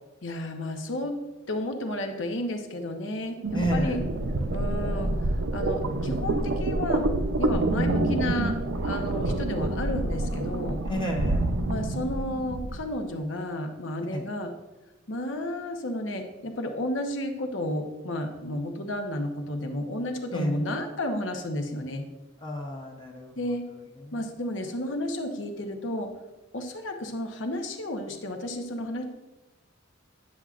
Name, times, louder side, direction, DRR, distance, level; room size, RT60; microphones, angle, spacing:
voice 1, 0.2-1.2 1.5-4.0 4.5-8.6 8.8-10.8 11.7-14.5 15.1-22.0 23.4-23.6 24.1-26.1 26.5-29.0, left 1 dB, 70° left, 5 dB, 0.9 m, -32 dB
sound 1, 3.4-12.9, right 2 dB, 85° right, 0.6 m, -27 dB
voice 2, 3.5-4.0 10.9-11.5 14.1-14.2 20.3-20.5 22.4-23.3, equal, 25° left, 1 dB, 0.8 m, -30 dB
9.6 x 7.2 x 2.5 m, 1.1 s
head